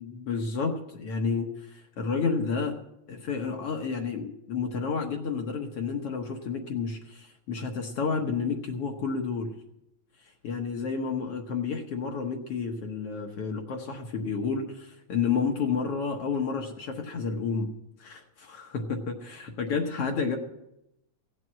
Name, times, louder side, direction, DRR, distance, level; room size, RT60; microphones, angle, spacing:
voice 1, 0.0-2.8 3.1-9.5 10.4-17.7 18.0-20.4, left 5 dB, 60° left, 2 dB, 1.9 m, -30 dB
16.5 x 7.8 x 7.5 m, 0.86 s
omnidirectional pair, 3.3 m